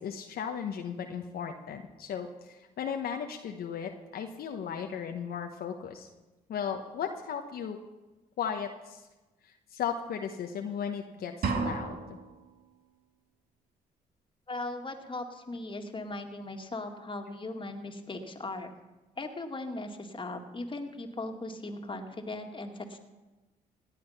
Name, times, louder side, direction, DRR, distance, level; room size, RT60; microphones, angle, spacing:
voice 1, 0.0-6.1 6.5-7.8 8.4-9.0 9.5-12.2, left 7 dB, 70° left, 4 dB, 1.1 m, -36 dB
sound 1, 11.4-12.4, right 4 dB, 65° right, 2.1 m, -32 dB
voice 2, 14.5-18.7 19.2-23.0, left 2 dB, 30° left, 4 dB, 2.1 m, -38 dB
17.0 x 9.3 x 5.8 m, 1.1 s
supercardioid pair, 55°, 16 cm